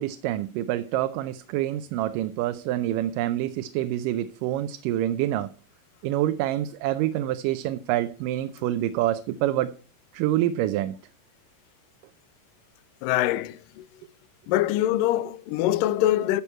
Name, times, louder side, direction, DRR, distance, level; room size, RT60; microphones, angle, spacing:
voice 1, 0.0-5.5 6.0-9.7 10.1-11.0, right 13 dB, 85° right, 2.2 m, -26 dB
voice 2, 13.0-13.8 14.5-16.4, left 14 dB, 90° left, 2.3 m, -24 dB
13.0 x 7.0 x 4.4 m
omnidirectional pair, 3.8 m